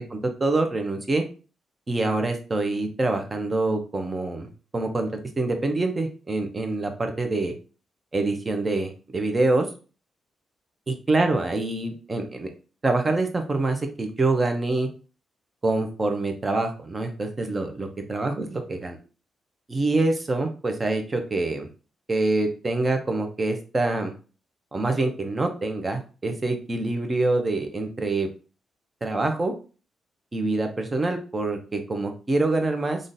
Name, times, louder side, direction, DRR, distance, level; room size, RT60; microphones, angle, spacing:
voice 1, 0.1-1.2 1.9-5.1 5.4-7.5 8.1-9.7 10.9-12.5 12.8-14.9 15.6-19.0 19.7-21.7 22.1-24.1 24.7-28.3 29.0-29.5 30.3-33.0, right 2 dB, 30° right, 5 dB, 0.7 m, -25 dB
3.6 x 2.5 x 2.7 m, 0.36 s
cardioid pair, 95°, 0 cm